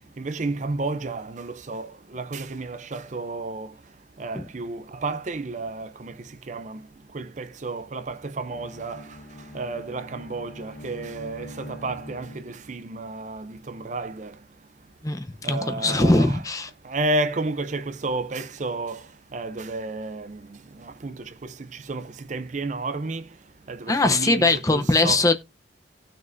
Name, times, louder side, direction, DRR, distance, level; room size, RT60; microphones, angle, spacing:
voice 1, 0.2-3.7 4.2-6.1 6.5-6.8 7.1-9.0 9.5-14.3 15.4-16.4 16.8-19.0 19.3-20.4 21.0-21.2 21.9-23.2 23.7-25.2, right 2 dB, 40° right, 0.5 m, -31 dB
Bowed string instrument, 8.5-12.9, left 1 dB, 55° left, 1.5 m, -43 dB
voice 2, 15.0-16.7 23.9-25.4, left 2 dB, 20° left, 0.7 m, -21 dB
17.0 x 6.2 x 2.6 m
head